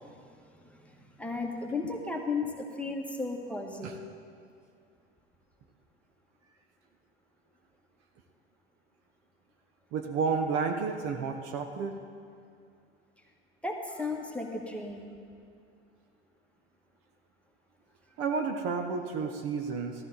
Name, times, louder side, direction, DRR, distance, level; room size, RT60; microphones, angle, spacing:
voice 1, 1.2-4.1 13.6-15.2, left 3 dB, 5° left, 1 dB, 1.4 m, -34 dB
voice 2, 9.9-12.0 18.2-20.1, right 5 dB, 45° right, 5 dB, 1.0 m, -31 dB
14.5 x 13.5 x 4.0 m, 2.4 s
figure-of-eight pair, 75°, 34 cm